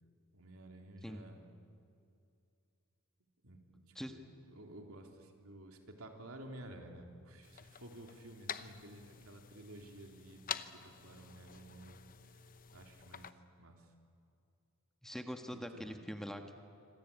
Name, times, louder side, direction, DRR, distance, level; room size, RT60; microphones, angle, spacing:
voice 1, 0.3-1.5 3.4-12.0 12.7-13.9 15.5-16.0, right 1 dB, 80° right, 3 dB, 3.5 m, -53 dB
sound 1, 7.4-13.3, left 8 dB, 40° left, 0.9 m, -48 dB
voice 2, 15.0-16.5, equal, ahead, 5 dB, 1.5 m, -43 dB
26.5 x 25.5 x 8.7 m, 2.5 s
head